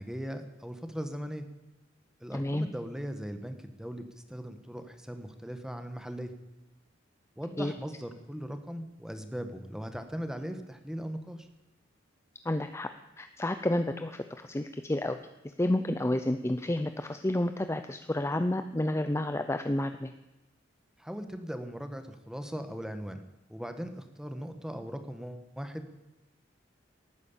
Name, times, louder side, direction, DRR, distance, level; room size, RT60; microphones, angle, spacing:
voice 1, 0.0-1.4 2.2-6.3 7.4-11.5 21.0-23.2 23.5-25.9, equal, 5° right, 8 dB, 1.3 m, -39 dB
voice 2, 2.3-2.7 7.6-7.7 12.4-12.9 13.2-15.2 15.6-20.1, left 1 dB, 15° left, 9 dB, 0.5 m, -30 dB
18.0 x 9.6 x 7.3 m, 1.0 s
head